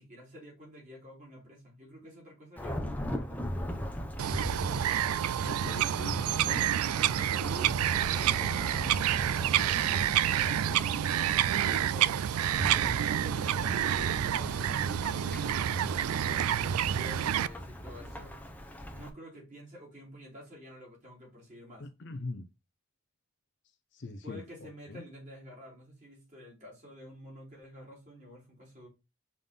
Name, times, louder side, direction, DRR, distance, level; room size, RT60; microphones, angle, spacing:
voice 1, 0.0-3.4 7.0-10.9 11.6-12.2 13.0-18.4 18.9-21.9 24.2-28.9, equal, 35° right, 3.4 m, -50 dB
Thunderstorm / Rain, 2.6-19.1, equal, 5° left, 0.7 m, -40 dB
Bird vocalization bird call bird song, 4.2-17.5, right 10 dB, 85° right, 0.3 m, -28 dB
voice 2, 5.4-6.7 22.0-22.4 23.9-24.4 24.9-25.0, left 2 dB, 55° left, 0.6 m, -40 dB
5.4 x 3.8 x 5.7 m
head